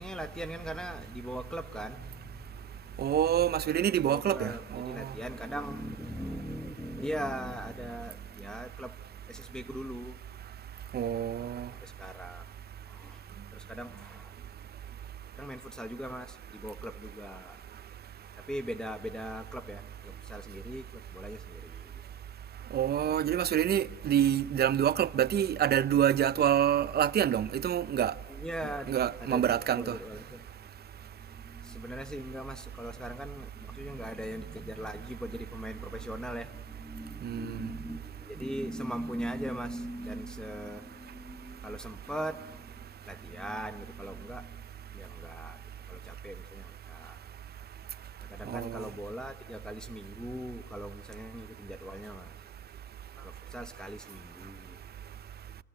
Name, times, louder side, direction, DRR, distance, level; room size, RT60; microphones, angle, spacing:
voice 1, 0.0-3.2 4.0-10.2 11.4-12.5 12.8-13.2 13.5-14.4 15.3-17.6 18.4-22.0 28.3-30.5 31.1-45.6 45.9-47.2 48.2-52.3 53.1-54.8, equal, 5° left, 1.1 m, -40 dB
voice 2, 3.0-5.1 10.9-11.7 22.7-28.1 28.9-29.9 37.2-37.7 48.5-48.8, right 10 dB, 55° right, 0.7 m, -27 dB
28.5 x 19.0 x 8.9 m
cardioid pair, 90°, 20 cm